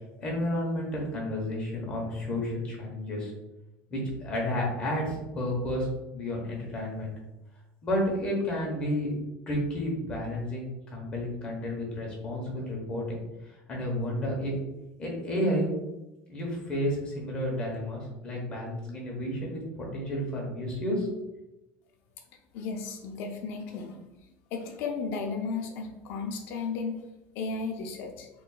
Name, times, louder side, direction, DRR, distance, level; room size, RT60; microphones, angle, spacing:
voice 1, 0.2-3.3 3.9-5.9 6.1-7.1 7.8-9.1 9.5-14.5 15.0-15.7 16.3-21.1, left 1 dB, 20° left, -2 dB, 0.9 m, -31 dB
voice 2, 22.5-27.0 27.3-28.3, left 4 dB, 45° left, 3 dB, 0.5 m, -34 dB
4.1 x 3.1 x 2.3 m, 0.98 s
cardioid pair, 180°, 5 cm